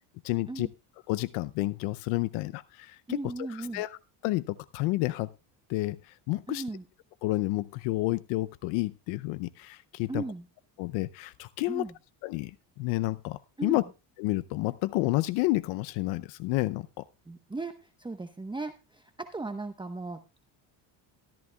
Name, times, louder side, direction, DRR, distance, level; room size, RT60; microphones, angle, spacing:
voice 1, 0.2-0.7 1.1-4.0 4.2-5.3 5.7-6.6 7.2-10.2 10.8-11.9 12.2-13.8 14.2-17.0, left 19 dB, 90° left, 14 dB, 0.6 m, -30 dB
voice 2, 3.1-3.8 6.5-6.8 10.1-10.5 11.7-11.9 13.6-13.8 17.3-20.2, right 3 dB, 10° right, 7 dB, 1.0 m, -37 dB
14.0 x 13.5 x 2.3 m, 0.29 s
cardioid pair, 100°, 45 cm